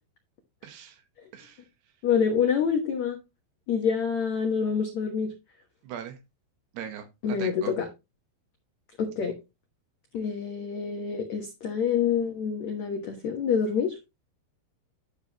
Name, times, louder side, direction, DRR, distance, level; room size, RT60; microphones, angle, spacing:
voice 1, 0.6-1.0 1.3-1.6 5.8-6.2 6.7-7.7, right 9 dB, 70° right, 2.9 m, -40 dB
voice 2, 2.0-3.2 3.7-5.3 7.2-7.9 9.0-9.3 10.1-14.0, left 7 dB, 80° left, 1.6 m, -27 dB
12.0 x 6.8 x 2.9 m
omnidirectional pair, 5.4 m